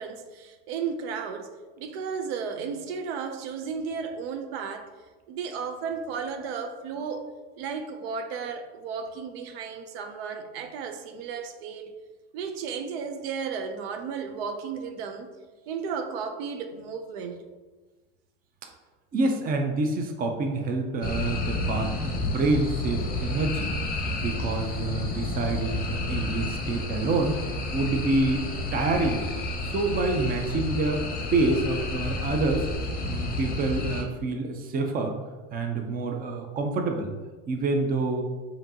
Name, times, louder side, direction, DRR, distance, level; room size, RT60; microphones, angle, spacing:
voice 1, 0.0-4.9 5.3-7.3 7.6-11.9 12.3-15.3 15.7-17.4, right 6 dB, 85° right, 7 dB, 0.5 m, -34 dB
voice 2, 19.1-23.7 24.2-27.4 27.7-29.3 29.6-31.0 31.3-32.7 33.1-35.1 35.5-37.1 37.5-38.2, right 3 dB, 30° right, 4 dB, 0.5 m, -27 dB
sound 1, 21.0-34.0, left 2 dB, 30° left, 0.7 m, -31 dB
5.0 x 2.7 x 2.8 m, 1.3 s
supercardioid pair, 120°, 30 cm